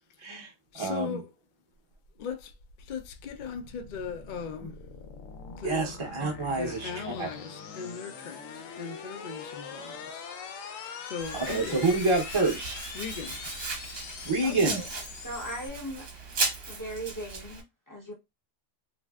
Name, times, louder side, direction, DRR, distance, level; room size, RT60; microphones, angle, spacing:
voice 1, 0.2-1.2 5.6-7.3 11.3-12.8 14.2-14.8, right 3 dB, 30° right, 0.6 m, -28 dB
voice 2, 0.7-1.3 2.2-2.5 2.9-4.8 5.6-6.0 6.5-10.2 11.0-11.8 12.9-13.4, left 6 dB, 70° left, 0.4 m, -38 dB
sound 1, 1.9-15.7, left 5 dB, 85° left, 1.0 m, -43 dB
Domestic sounds home sounds, 11.2-17.6, right 3 dB, 55° right, 1.1 m, -36 dB
voice 3, 14.4-14.9 15.2-16.1 16.7-18.1, right 1 dB, 20° left, 0.6 m, -38 dB
3.1 x 2.6 x 2.3 m
omnidirectional pair, 1.3 m